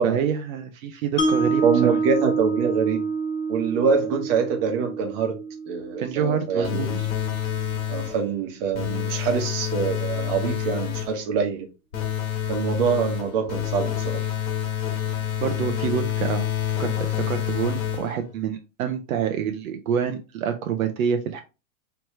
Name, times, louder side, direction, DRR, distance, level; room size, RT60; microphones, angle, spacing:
voice 1, 0.0-2.0 6.0-7.1 15.4-16.5 16.8-21.4, right 8 dB, 75° right, 0.7 m, -27 dB
Mallet percussion, 1.2-7.3, right 3 dB, 15° left, 0.7 m, -27 dB
voice 2, 1.6-3.0 3.5-5.4 5.7-7.0 7.9-11.7 12.5-14.3, right 6 dB, 40° right, 1.0 m, -25 dB
sound 1, 6.6-8.3 8.7-11.2 11.9-18.3, left 10 dB, 75° left, 1.4 m, -28 dB
3.2 x 3.1 x 3.1 m
hypercardioid pair, 145°, 42 cm